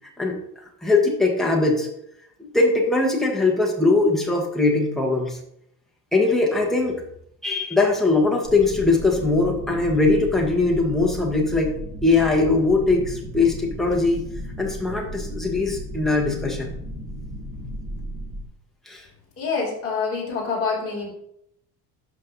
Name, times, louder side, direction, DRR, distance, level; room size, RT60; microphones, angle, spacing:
voice 1, 0.8-1.9 2.4-5.4 6.1-7.0 7.4-11.7 12.0-14.2 14.6-16.7 18.9-19.0, left 3 dB, ahead, -2 dB, 1.2 m, -21 dB
sound 1, 8.4-18.4, equal, 20° right, 2.2 m, -35 dB
voice 2, 19.4-21.1, left 5 dB, 30° left, -3 dB, 2.9 m, -26 dB
12.0 x 5.3 x 2.7 m, 0.73 s
cardioid pair, 170°, 43 cm